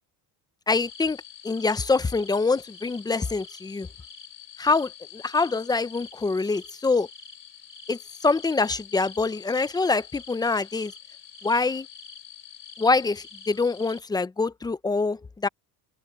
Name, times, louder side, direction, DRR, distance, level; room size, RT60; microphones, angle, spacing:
sound 1, 0.7-14.0, left 7 dB, 25° left, 3.0 m, -46 dB
voice 1, 0.7-1.2 1.4-3.9 4.6-7.1 7.9-10.9 11.4-11.9 12.8-15.5, left 3 dB, 10° left, 0.3 m, -25 dB
open air
cardioid pair, 130°, 45 cm